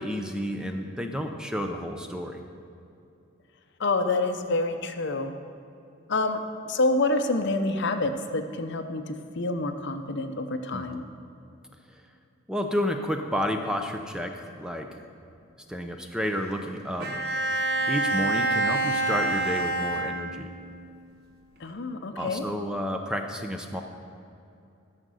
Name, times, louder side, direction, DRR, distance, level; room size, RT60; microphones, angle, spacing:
voice 1, 0.0-2.4 10.7-11.0 12.5-14.9 15.7-17.1 17.9-20.5 22.2-23.8, equal, 5° right, 4 dB, 0.5 m, -31 dB
voice 2, 3.8-5.3 6.1-6.4 6.7-9.0 9.4-11.1 21.6-22.4, left 2 dB, 55° left, 8 dB, 0.7 m, -27 dB
Bowed string instrument, 17.0-20.7, right 2 dB, 50° right, 1.1 m, -27 dB
13.0 x 6.6 x 6.3 m, 2.7 s
head